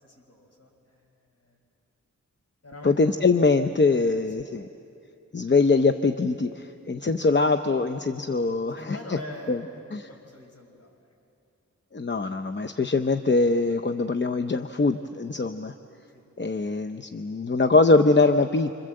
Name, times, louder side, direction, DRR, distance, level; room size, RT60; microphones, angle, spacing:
voice 1, 0.0-1.0 1.3-1.6 2.6-3.2 3.9-4.5 8.7-11.1 16.1-16.2, left 1 dB, 55° left, 1 dB, 5.6 m, -44 dB
voice 2, 2.8-4.7 5.3-9.2 9.5-9.6 9.9-10.1 11.9-15.7 16.4-18.7, left 3 dB, 35° left, 7 dB, 0.8 m, -23 dB
26.5 x 25.5 x 7.8 m, 2.7 s
wide cardioid pair, 60°, 30 cm